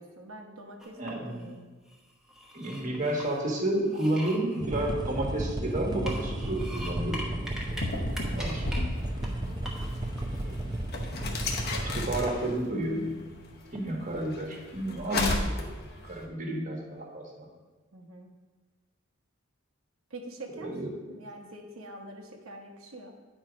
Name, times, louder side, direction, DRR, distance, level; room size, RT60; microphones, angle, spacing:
voice 1, 0.0-1.7 9.3-9.6 17.9-18.3 20.1-20.7 21.1-23.1, right 1 dB, 80° right, 2 dB, 1.1 m, -45 dB
sound 1, 0.8-1.5 1.9-3.4 3.9-5.5 5.9-7.8 8.1-8.8 9.2-9.3 9.6-10.2, equal, ahead, 1.0 m, -42 dB
voice 2, 0.9-1.4 2.5-7.2 8.4-8.7 10.4-10.6 11.8-13.0 13.7-15.2 15.6-15.7 16.0-17.5 20.5-20.9, right 1 dB, 35° right, 0 dB, 1.4 m, -31 dB
sound 2, 4.6-12.5 13.7-13.8 14.1-14.2, right 1 dB, 20° right, 0.5 m, -34 dB
sound 3, 7.6-16.2, left 2 dB, 50° left, 0.9 m, -35 dB
9.3 x 4.5 x 5.0 m, 1.3 s
head